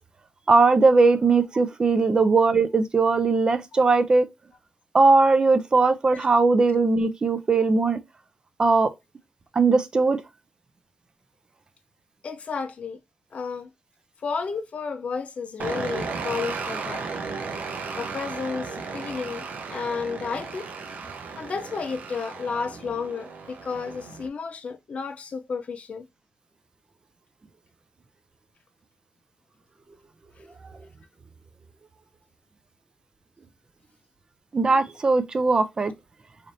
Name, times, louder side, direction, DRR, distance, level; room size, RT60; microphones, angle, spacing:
voice 1, 0.5-4.3 4.9-8.0 8.6-8.9 9.6-10.2 34.5-35.9, right 3 dB, 30° right, 0.4 m, -19 dB
voice 2, 5.9-6.3 12.2-13.0 13.3-13.7 14.2-17.1 17.9-20.7 21.4-26.1, left 5 dB, 50° left, 0.5 m, -32 dB
sound 1, 15.6-24.3, right 4 dB, 70° right, 0.7 m, -35 dB
3.3 x 2.6 x 4.0 m
wide cardioid pair, 180°, 3 cm